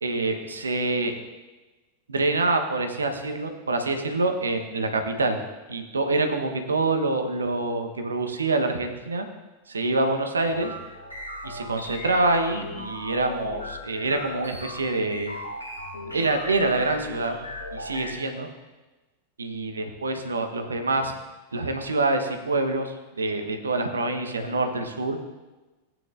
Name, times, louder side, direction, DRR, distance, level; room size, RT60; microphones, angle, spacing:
voice 1, 0.0-1.1 2.1-5.4 5.7-9.3 9.7-10.7 11.4-15.4 16.1-17.4 17.7-18.5 19.4-21.1 21.5-25.2, right 2 dB, 75° right, 6 dB, 1.1 m, -26 dB
sound 1, 10.4-18.1, left 1 dB, 85° left, 3.8 m, -37 dB
16.5 x 9.1 x 2.6 m, 1.2 s
figure-of-eight pair, 90°, 0 cm